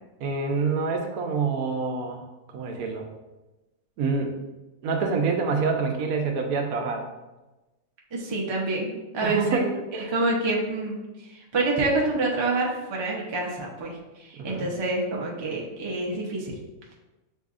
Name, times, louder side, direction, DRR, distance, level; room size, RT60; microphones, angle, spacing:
voice 1, 0.2-2.2 2.5-3.1 4.0-4.4 4.8-7.1 9.2-10.2 14.3-14.7, right 4 dB, 80° right, 3 dB, 1.1 m, -27 dB
voice 2, 8.1-9.6 9.9-11.0 11.3-16.6, right 2 dB, 40° right, -2 dB, 0.4 m, -27 dB
6.4 x 2.7 x 2.4 m, 1.1 s
omnidirectional pair, 1.5 m